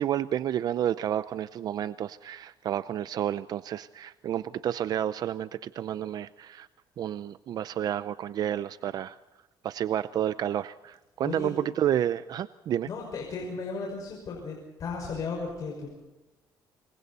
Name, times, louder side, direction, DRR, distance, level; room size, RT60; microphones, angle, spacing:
voice 1, 0.0-6.7 7.0-9.2 9.6-12.9, right 10 dB, 55° right, 15 dB, 0.6 m, -30 dB
voice 2, 12.8-15.9, left 4 dB, 50° left, 0 dB, 5.6 m, -35 dB
28.0 x 23.5 x 4.2 m, 1.1 s
cardioid pair, 130°, 8 cm